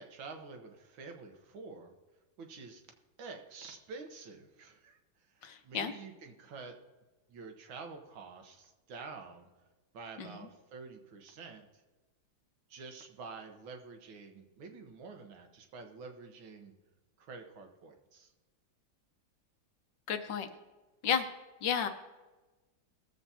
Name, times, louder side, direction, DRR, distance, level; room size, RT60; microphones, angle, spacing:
voice 1, 0.0-1.9 2.4-2.8 3.2-5.0 5.2-6.8 7.3-9.5 9.9-11.8 12.7-16.7 17.2-18.3, right 4 dB, 85° right, 4 dB, 1.9 m, -48 dB
voice 2, 5.4-5.9 10.2-10.5 20.1-20.5 21.0-21.3 21.6-21.9, left 7 dB, 70° left, 7 dB, 1.5 m, -32 dB
19.0 x 7.3 x 2.8 m, 1.2 s
omnidirectional pair, 2.1 m